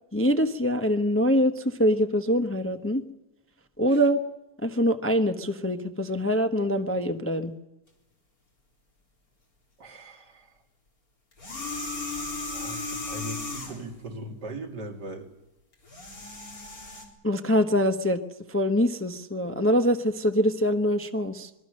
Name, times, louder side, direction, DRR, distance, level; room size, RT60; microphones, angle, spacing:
voice 1, 0.1-3.0 3.8-4.2 4.6-7.5 17.2-18.2 18.5-21.5, equal, 10° left, 6 dB, 0.8 m, -24 dB
voice 2, 9.8-10.5 12.5-15.3, right 1 dB, 75° right, 2 dB, 3.1 m, -39 dB
sound 1, 11.3-13.9 15.7-17.0, left 3 dB, 55° left, 4.4 m, -35 dB
26.0 x 21.5 x 6.5 m, 0.96 s
omnidirectional pair, 1.8 m